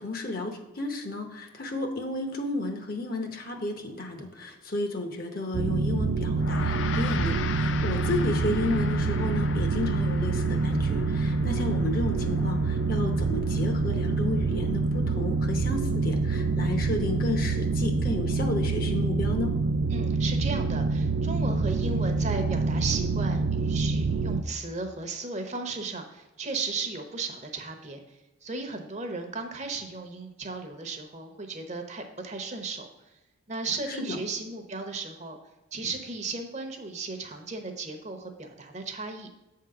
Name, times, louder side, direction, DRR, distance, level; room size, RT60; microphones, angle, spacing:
voice 1, 0.0-19.5, left 2 dB, 45° left, 5 dB, 0.9 m, -32 dB
sound 1, 5.5-24.4, right 3 dB, 60° right, 0.4 m, -26 dB
Gong, 6.4-16.0, left 6 dB, 60° left, 0.4 m, -40 dB
voice 2, 19.9-32.9 33.5-35.4 35.7-39.4, right 3 dB, 35° right, 5 dB, 0.8 m, -35 dB
8.1 x 3.7 x 5.7 m, 1.1 s
head